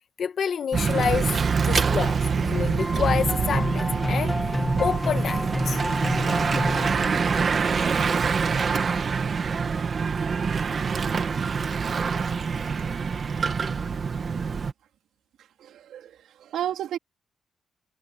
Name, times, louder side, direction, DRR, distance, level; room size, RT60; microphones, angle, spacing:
voice 1, 0.2-1.3 1.7-5.8, left 7 dB, 45° left, 1.7 m, -28 dB
Bicycle / Mechanisms, 0.7-14.7, right 5 dB, 35° right, 2.0 m, -25 dB
sound 1, 2.5-7.7, left 1 dB, 5° left, 1.9 m, -29 dB
voice 2, 15.4-17.0, right 11 dB, 80° right, 4.0 m, -33 dB
wide cardioid pair, 175°, 0 cm